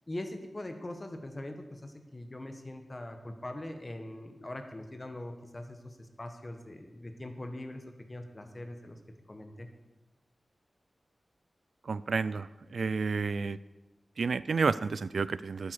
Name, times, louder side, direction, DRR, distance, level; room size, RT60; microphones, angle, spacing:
voice 1, 0.1-9.0 9.3-9.7, left 1 dB, 30° left, 6 dB, 1.5 m, -42 dB
voice 2, 11.9-12.5 12.7-13.6 14.2-15.7, right 4 dB, 75° right, 17 dB, 0.3 m, -30 dB
12.0 x 9.5 x 4.8 m, 1.1 s
wide cardioid pair, 80°, 0 cm